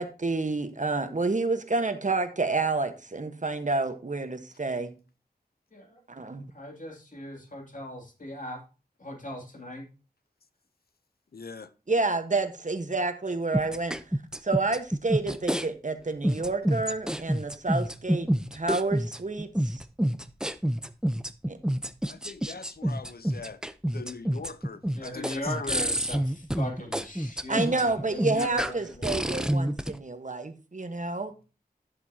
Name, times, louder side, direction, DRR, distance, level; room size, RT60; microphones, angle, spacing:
voice 1, 0.0-4.9 6.1-6.4 11.9-14.0 14.4-19.8 21.5-21.6 27.5-31.3, right 3 dB, 50° right, 1.3 m, -29 dB
voice 2, 6.5-8.6 9.0-9.9 24.9-29.1, left 1 dB, 50° left, 2.8 m, -39 dB
voice 3, 11.3-11.7 22.0-23.6 23.9-25.7, left 4 dB, 70° left, 0.7 m, -41 dB
sound 1, 13.5-15.7 16.2-30.0, equal, 5° right, 0.7 m, -28 dB
11.0 x 7.5 x 2.8 m
wide cardioid pair, 50°, 17 cm